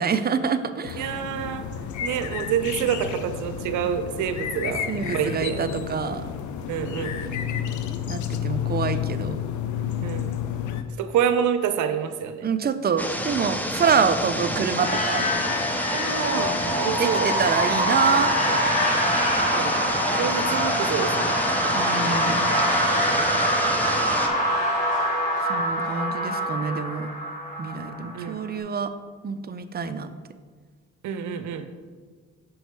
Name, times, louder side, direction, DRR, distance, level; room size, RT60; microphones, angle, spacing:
voice 1, 0.0-1.1 4.9-6.3 8.1-9.4 12.4-15.2 16.6-16.7 17.0-18.6 21.7-22.6 25.5-27.1 27.6-28.9 29.2-30.1, right 6 dB, 30° right, 10 dB, 0.5 m, -26 dB
sound 1, 0.8-10.8, left 9 dB, 75° left, 0.6 m, -31 dB
voice 2, 1.0-1.6 2.0-5.6 6.7-7.2 10.0-10.4 11.0-12.5 15.9-17.3 19.5-19.8 20.2-21.4 28.1-28.4 31.0-31.7, right 8 dB, 80° right, 9 dB, 0.7 m, -27 dB
sound 2, 13.0-24.3, equal, 5° left, 0.7 m, -29 dB
sound 3, 14.7-28.4, equal, 25° left, 2.1 m, -25 dB
6.3 x 5.1 x 4.7 m, 1.5 s
cardioid pair, 90°, 30 cm